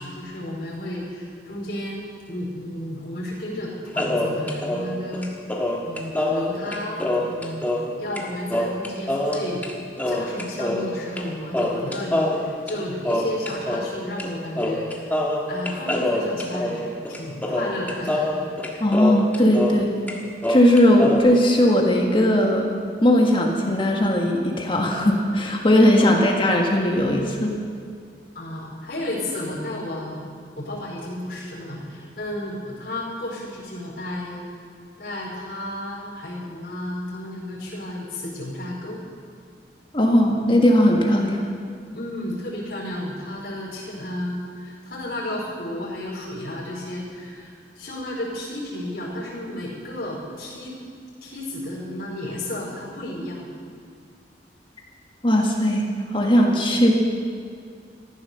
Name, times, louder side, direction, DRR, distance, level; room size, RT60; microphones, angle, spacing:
voice 1, 0.0-5.3 5.8-7.7 8.0-9.6 10.0-15.2 15.5-16.9 17.2-18.5 18.7-18.8 26.0-26.3 28.3-34.5 35.0-39.0 41.9-50.8 51.2-53.5, left 1 dB, 55° left, -5 dB, 4.8 m, -32 dB
sound 1, 4.0-8.2 8.5-9.7 10.0-11.3 11.5-13.9 14.2-14.3 14.6-19.8 20.1-21.2, left 1 dB, 10° left, 1.5 m, -25 dB
voice 2, 18.8-19.9 20.5-27.6 39.9-41.4 55.2-55.9 56.1-56.9, left 1 dB, 30° left, 0 dB, 1.6 m, -18 dB
14.5 x 14.0 x 6.8 m, 2.2 s
head